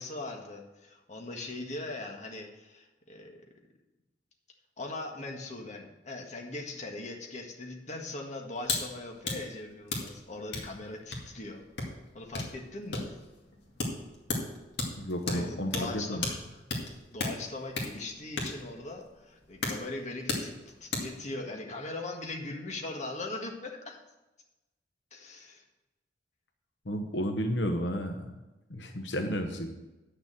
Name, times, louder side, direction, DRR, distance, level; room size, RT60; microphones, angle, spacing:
voice 1, 0.0-3.4 4.8-11.6 12.1-13.1 15.3-16.3 17.1-20.5 20.8-24.0 25.1-25.6, left 2 dB, 40° left, 1 dB, 1.7 m, -40 dB
sound 1, 8.6-8.8 9.1-21.2, left 3 dB, 65° left, 2.2 m, -36 dB
voice 2, 15.0-16.2 26.8-28.4 28.7-29.8, equal, 85° left, 5 dB, 1.0 m, -32 dB
9.9 x 6.9 x 7.6 m, 1.0 s
head